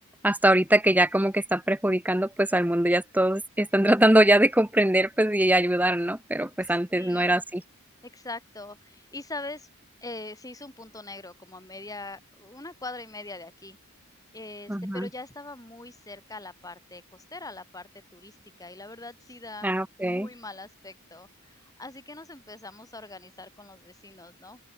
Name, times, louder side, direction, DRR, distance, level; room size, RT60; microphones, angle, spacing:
voice 1, 0.2-7.6 14.7-15.1 19.6-20.3, right 1 dB, 10° right, 1.5 m, -22 dB
voice 2, 6.6-7.4 8.0-9.7 10.0-13.8 14.3-19.7 20.0-24.6, left 2 dB, 15° left, 4.5 m, -42 dB
open air
head